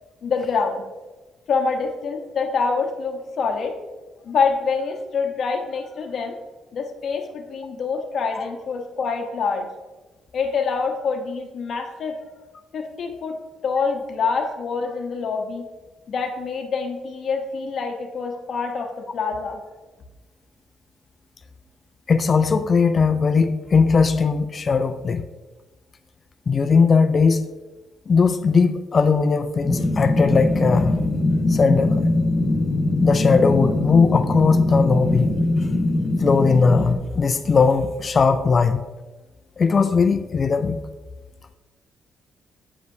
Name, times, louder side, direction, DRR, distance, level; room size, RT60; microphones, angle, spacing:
voice 1, 0.2-0.9 1.5-3.8 4.2-6.4 6.7-9.7 10.3-12.2 12.7-15.6 16.1-19.6, left 5 dB, 60° left, 3 dB, 0.9 m, -26 dB
voice 2, 22.1-25.2 26.5-27.4 28.1-31.0 31.5-32.0 33.0-35.3 36.2-38.9 39.6-40.8, left 5 dB, 40° left, 10 dB, 0.3 m, -19 dB
sound 1, 29.6-36.9, left 2 dB, 15° left, 1.5 m, -21 dB
8.0 x 5.0 x 2.7 m, 1.2 s
cardioid pair, 90°, 0 cm